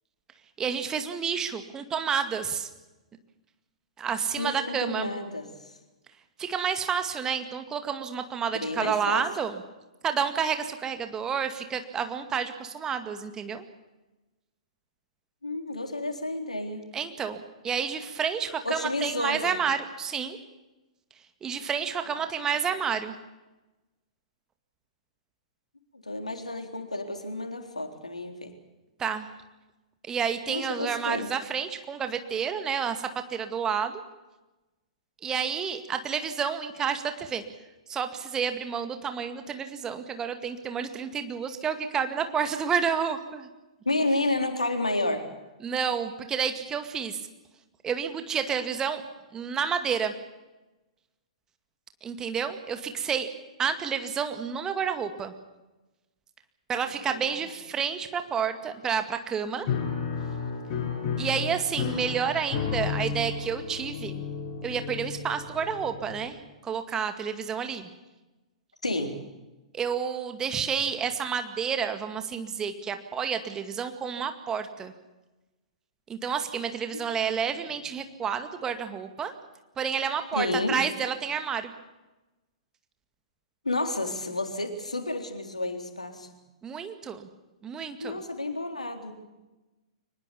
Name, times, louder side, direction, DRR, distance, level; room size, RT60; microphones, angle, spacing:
voice 1, 0.6-2.7 4.0-5.1 6.4-9.6 10.0-13.6 16.9-20.4 21.4-23.1 29.0-29.3 30.0-34.0 35.2-37.4 37.9-43.5 45.6-47.2 47.8-49.0 49.3-50.1 52.0-53.3 53.6-55.3 56.7-59.7 61.2-64.1 64.6-66.4 66.6-67.9 69.7-74.9 76.1-79.3 79.8-81.7 86.6-87.3 87.6-88.2, right 7 dB, 15° right, 8 dB, 2.1 m, -30 dB
voice 2, 4.4-5.8 8.6-9.2 15.4-16.8 18.6-19.6 22.1-22.5 26.0-28.5 30.5-31.3 43.9-45.2 56.8-57.4 68.8-69.2 80.3-80.8 83.6-86.3 88.0-89.2, left 2 dB, 80° left, 5 dB, 3.7 m, -31 dB
Piano, 59.7-66.4, left 6 dB, 35° left, 7.2 m, -32 dB
23.5 x 20.5 x 7.1 m, 1.1 s
figure-of-eight pair, 110°, 4 cm